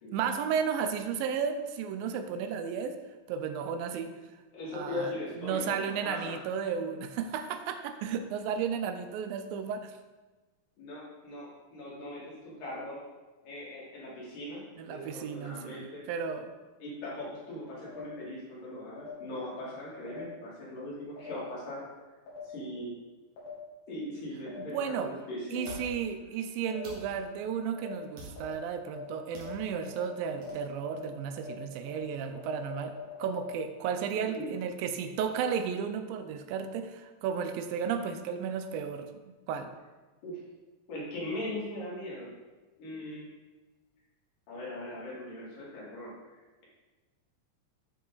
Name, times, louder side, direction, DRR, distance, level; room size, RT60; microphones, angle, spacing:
voice 1, 0.1-3.0 3.3-4.1 4.7-5.1 5.4-9.9 14.8-16.5 24.7-25.1 25.5-39.1 39.5-39.7, right 7 dB, 85° right, 8 dB, 2.4 m, -33 dB
voice 2, 4.5-6.4 10.8-13.0 13.4-16.1 16.8-21.9 22.4-22.9 23.9-25.8 34.2-34.6 40.2-40.4 40.9-42.3 42.8-43.2 44.5-46.1, left 1 dB, 70° left, -7 dB, 4.2 m, -40 dB
sound 1, 17.9-18.0 19.0-19.1 20.1-20.2 21.2-21.3 22.3-22.4 23.4-23.5 24.5-24.6 25.6-25.7 26.7-26.8 27.8-27.9 28.4-28.5 28.9-29.0 29.4-29.5 29.9-30.0 30.4-30.5 30.9-31.0 31.4-31.5 31.9-32.0 32.4-33.5, left 2 dB, 85° left, 4.4 m, -47 dB
sound 2, 24.8-24.9 25.6-25.9 26.8-27.0 28.2-28.5 29.3-29.5 30.4-30.6, right 1 dB, 45° right, 2.4 m, -45 dB
10.5 x 5.6 x 4.0 m, 1.2 s
omnidirectional pair, 4.1 m